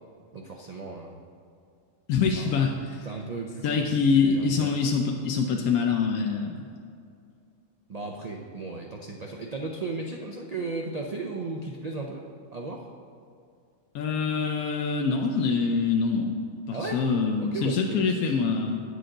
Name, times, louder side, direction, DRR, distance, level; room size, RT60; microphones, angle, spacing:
voice 1, 0.3-1.2 2.4-2.5 3.0-3.8 4.1-4.7 7.9-12.2 12.5-12.9 16.7-17.0 17.4-18.4, right 3 dB, 80° right, 1 dB, 0.3 m, -35 dB
voice 2, 2.1-3.1 3.6-6.6 13.9-16.4 16.7-18.8, left 5 dB, 85° left, 2 dB, 1.1 m, -25 dB
8.9 x 6.8 x 3.8 m, 2.3 s
omnidirectional pair, 1.5 m